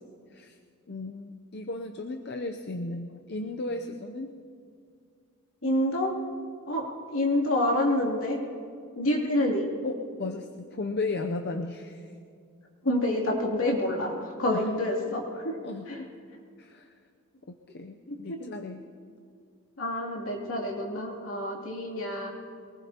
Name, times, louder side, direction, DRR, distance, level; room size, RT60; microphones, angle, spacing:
voice 1, 0.9-4.4 9.8-12.1 14.5-14.7 15.6-16.1 16.6-16.9 17.5-18.8, left 2 dB, 50° left, 5 dB, 0.6 m, -35 dB
voice 2, 5.6-6.1 6.7-8.4 9.0-9.7 12.8-15.6 15.9-16.0 18.1-18.2 19.8-22.3, left 1 dB, 70° left, -2 dB, 2.8 m, -27 dB
23.0 x 19.5 x 2.9 m, 2.3 s
head